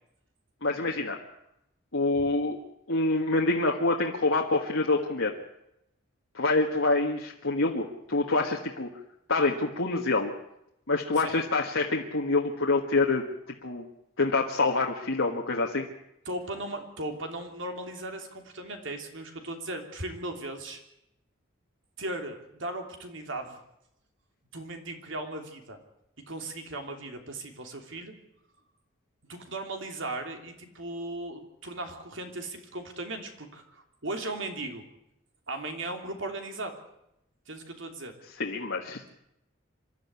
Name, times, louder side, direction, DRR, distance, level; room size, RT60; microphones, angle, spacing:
voice 1, 0.6-1.2 1.9-2.6 2.9-5.3 6.3-8.9 9.3-10.3 10.9-13.2 13.6-13.9 14.2-15.9 38.4-39.1, left 3 dB, 75° left, -1 dB, 1.7 m, -26 dB
voice 2, 16.2-20.8 22.0-23.6 24.5-25.8 26.3-28.1 29.3-34.8 35.5-36.7 37.5-38.2, right 2 dB, 70° right, 4 dB, 3.2 m, -37 dB
26.0 x 12.5 x 9.7 m, 0.84 s
head